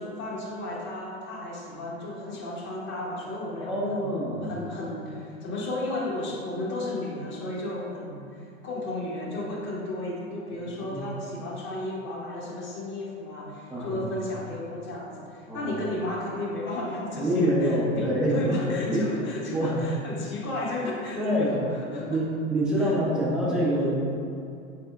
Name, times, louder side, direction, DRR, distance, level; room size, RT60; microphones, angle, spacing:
voice 1, 0.0-4.1 4.4-22.2 22.8-22.9, left 2 dB, 30° left, -3 dB, 0.8 m, -34 dB
voice 2, 3.6-4.5 10.8-11.0 13.7-14.0 15.5-15.7 17.2-19.0 19.5-19.7 21.2-21.6 22.1-23.9, equal, ahead, -6 dB, 0.4 m, -26 dB
4.2 x 3.5 x 3.3 m, 2.5 s
figure-of-eight pair, 90°, 41 cm